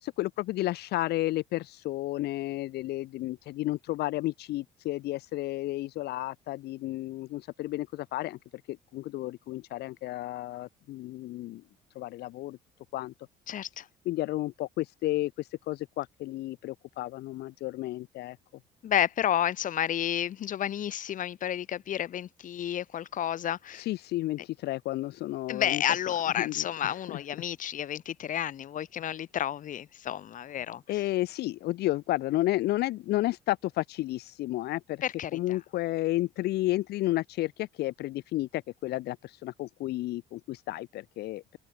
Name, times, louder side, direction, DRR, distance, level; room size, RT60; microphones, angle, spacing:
voice 1, 0.0-8.4 8.7-11.6 11.9-12.6 12.9-13.1 14.0-18.4 23.7-27.2 30.9-35.0 35.3-41.6, left 16 dB, 75° left, 0.9 m, -32 dB
voice 2, 13.5-13.9 18.8-23.9 25.5-30.8 35.0-35.4, left 10 dB, 50° left, 1.3 m, -31 dB
open air
cardioid pair, 110°, 17 cm